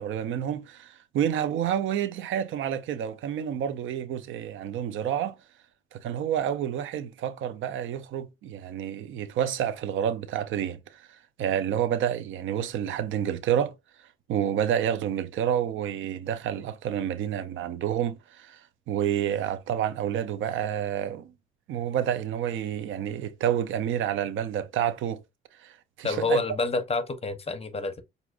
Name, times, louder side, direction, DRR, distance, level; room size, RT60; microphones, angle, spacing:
voice 1, 0.0-5.4 5.9-11.0 11.4-13.7 14.3-18.6 18.9-21.3 21.7-25.2 25.6-26.4, right 9 dB, 80° right, 0.6 m, -29 dB
voice 2, 26.0-28.0, left 3 dB, 30° left, 0.9 m, -28 dB
5.9 x 2.7 x 2.4 m
cardioid pair, 90°, 20 cm